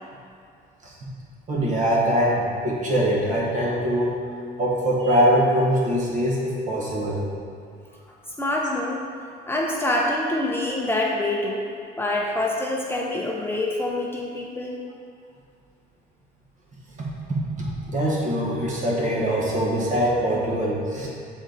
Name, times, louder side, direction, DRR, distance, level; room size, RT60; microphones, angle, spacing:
voice 1, 1.5-4.1 4.6-7.2 17.0-21.1, equal, 45° right, -4 dB, 1.5 m, -23 dB
voice 2, 8.4-9.0 9.5-11.6 12.0-14.8, left 1 dB, 15° left, -2 dB, 0.7 m, -25 dB
7.0 x 4.2 x 4.0 m, 2.3 s
cardioid pair, 110°, 17 cm